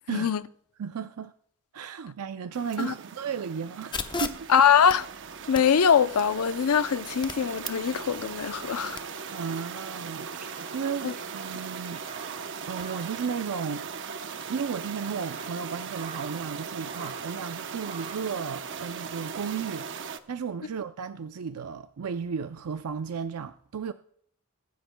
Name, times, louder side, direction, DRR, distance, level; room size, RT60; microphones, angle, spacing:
voice 1, 0.1-0.4 2.8-2.9 4.5-5.1 5.5-9.0 11.0-11.1, left 7 dB, 80° left, 0.5 m, -23 dB
voice 2, 0.8-1.3 1.7-4.5 9.3-12.0 12.7-13.8 14.5-23.9, right 6 dB, 80° right, 0.5 m, -34 dB
sound 1, 2.5-20.2, right 6 dB, 60° right, 0.8 m, -39 dB
sound 2, 3.9-9.0, left 4 dB, 20° left, 0.8 m, -40 dB
sound 3, 10.2-14.1 14.4-14.5 15.0-16.6 16.8-17.4 17.8-18.4, right 4 dB, 35° right, 1.2 m, -47 dB
22.5 x 10.5 x 2.2 m
head